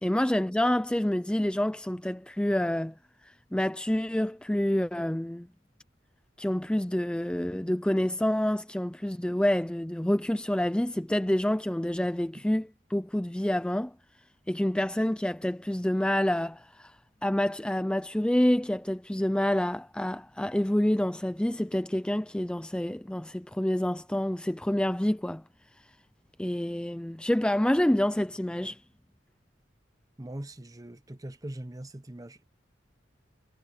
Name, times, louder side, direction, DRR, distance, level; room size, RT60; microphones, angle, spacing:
voice 1, 0.0-2.9 3.2-5.5 6.4-12.6 12.9-13.9 14.5-17.0 17.2-25.4 26.4-28.8, left 1 dB, 5° left, 0.4 m, -27 dB
voice 2, 30.2-32.4, right 1 dB, 20° right, 0.9 m, -41 dB
head